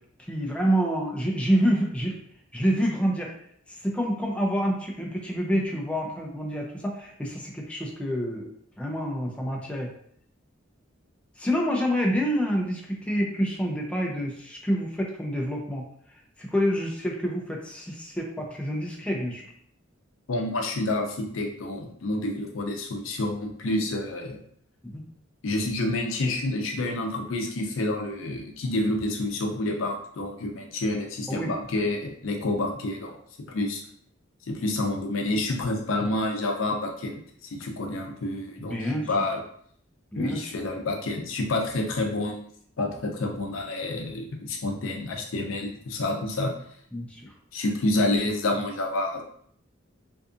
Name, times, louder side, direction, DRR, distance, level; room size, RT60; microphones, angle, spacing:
voice 1, 0.3-2.2 2.5-3.3 3.7-8.5 8.8-9.9 11.4-15.9 16.4-19.4 24.8-25.0 31.3-31.5 38.6-39.1 40.1-40.4 46.9-47.3, equal, 5° left, -1 dB, 0.4 m, -27 dB
voice 2, 20.3-24.4 25.4-33.2 33.5-33.8 34.5-39.4 40.2-42.4 42.8-46.5 47.5-49.2, left 2 dB, 85° left, 2 dB, 0.5 m, -28 dB
2.6 x 2.4 x 2.4 m, 0.64 s
head